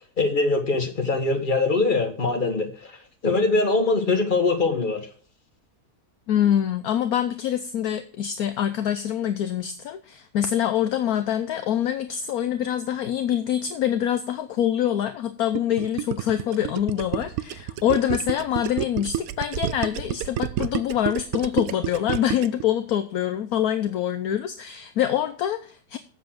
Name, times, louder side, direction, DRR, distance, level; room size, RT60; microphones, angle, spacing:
voice 1, 0.2-2.9 3.2-5.0, left 3 dB, 30° left, 3 dB, 1.9 m, -22 dB
voice 2, 6.3-26.0, left 10 dB, 70° left, 9 dB, 1.1 m, -25 dB
Gurgling, 15.5-22.6, right 12 dB, 70° right, 0.9 m, -29 dB
7.8 x 7.3 x 5.9 m, 0.42 s
omnidirectional pair, 1.8 m